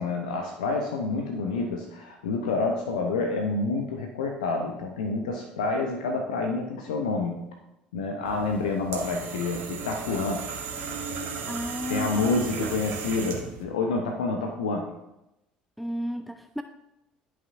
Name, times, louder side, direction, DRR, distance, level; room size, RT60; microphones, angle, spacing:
voice 1, 0.0-7.5 7.9-10.5 11.9-14.9, left 3 dB, 75° left, 2 dB, 0.7 m, -28 dB
sound 1, 8.3-13.6, right 5 dB, 50° right, 1.5 m, -35 dB
voice 2, 11.5-12.3 12.6-12.8 15.8-16.6, equal, ahead, 8 dB, 0.4 m, -33 dB
11.0 x 5.9 x 2.6 m, 0.90 s
figure-of-eight pair, 60°, 4 cm